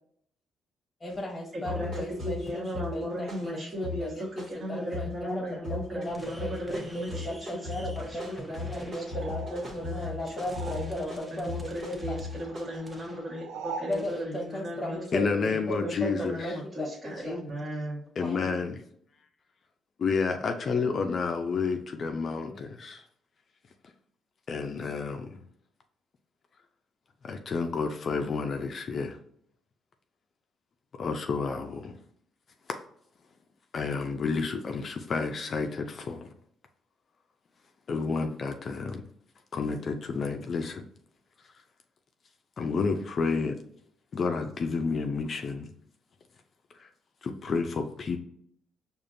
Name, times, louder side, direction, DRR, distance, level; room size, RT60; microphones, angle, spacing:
voice 1, 1.0-12.2 13.8-16.1 16.4-17.4 18.2-18.5, equal, 25° left, 1.0 m, -36 dB
sound 1, 1.1-1.2 1.6-5.2 5.6-6.1 6.4-12.8, left 4 dB, 65° right, 1.5 m, -38 dB
voice 2, 1.5-7.7 8.0-8.2 8.5-9.0 9.5-15.5 15.8-18.0, equal, 30° right, 1.1 m, -37 dB
sound 2, 6.0-13.3 13.9-14.5, right 1 dB, 10° right, 0.8 m, -50 dB
sound 3, 9.0-11.3 11.5-14.0, right 5 dB, 90° right, 0.4 m, -43 dB
voice 3, 15.1-16.6 18.2-18.8 20.0-23.1 24.5-25.4 27.2-29.2 31.0-32.0 33.7-36.3 37.9-39.0 39.5-40.8 42.6-43.6 44.1-45.7 46.7-46.9 47.2-48.2, left 4 dB, 50° left, 0.4 m, -30 dB
4.9 x 2.5 x 2.5 m
cardioid pair, 90°, 0 cm